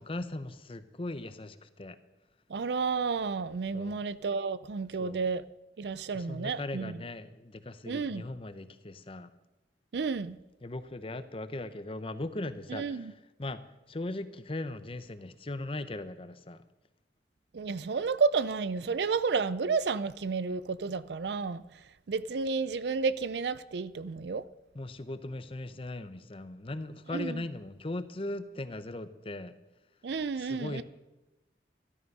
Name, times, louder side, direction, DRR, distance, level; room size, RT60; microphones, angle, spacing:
voice 1, 0.0-2.0 3.7-4.1 5.0-5.3 6.1-9.3 10.6-13.1 13.4-13.6 13.9-16.6 24.7-29.5 30.4-30.8, left 2 dB, 30° left, 0.7 m, -39 dB
voice 2, 2.5-5.4 5.8-7.0 7.9-8.3 9.9-10.4 12.7-13.1 17.5-21.6 22.1-24.4 27.1-27.4 30.0-30.8, right 5 dB, 70° right, 0.5 m, -31 dB
13.5 x 12.5 x 5.4 m
head